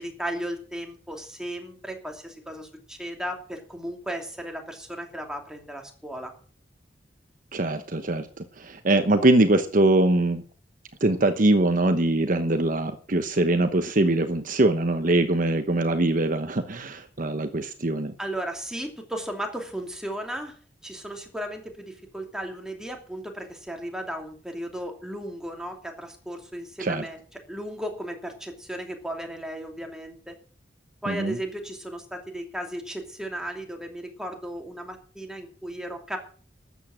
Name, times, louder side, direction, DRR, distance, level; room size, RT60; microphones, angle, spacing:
voice 1, 0.0-6.3 18.2-20.5 20.8-30.4 31.0-36.2, right 1 dB, 5° right, 3 dB, 2.8 m, -35 dB
voice 2, 7.5-10.4 11.0-18.1 26.8-27.0 31.1-31.4, right 2 dB, 50° right, 9 dB, 1.1 m, -22 dB
13.5 x 8.3 x 7.7 m, 0.42 s
head